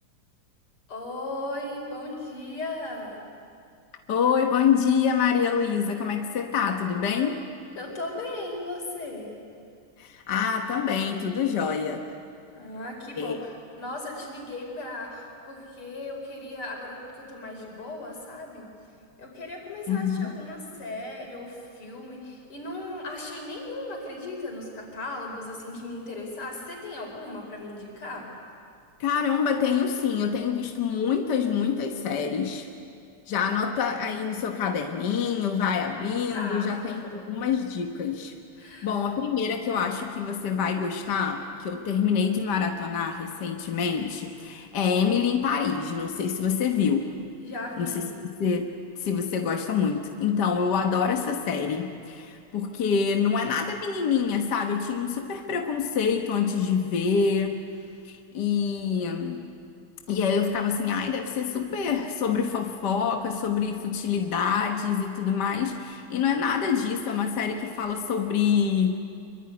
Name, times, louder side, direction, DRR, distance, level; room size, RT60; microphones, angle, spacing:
voice 1, 0.9-3.2 7.8-9.3 12.5-18.7 19.2-28.3 36.3-37.2 38.6-38.9 47.4-48.1, left 2 dB, 80° left, 1 dB, 5.9 m, -37 dB
voice 2, 4.1-7.4 10.0-12.1 13.2-13.4 19.9-20.4 29.0-32.7 33.3-38.3 38.8-47.1 47.8-48.7 49.0-57.6 58.1-59.5 60.1-69.0, left 6 dB, 55° left, 3 dB, 1.8 m, -26 dB
25.5 x 24.0 x 9.8 m, 2.4 s
omnidirectional pair, 2.4 m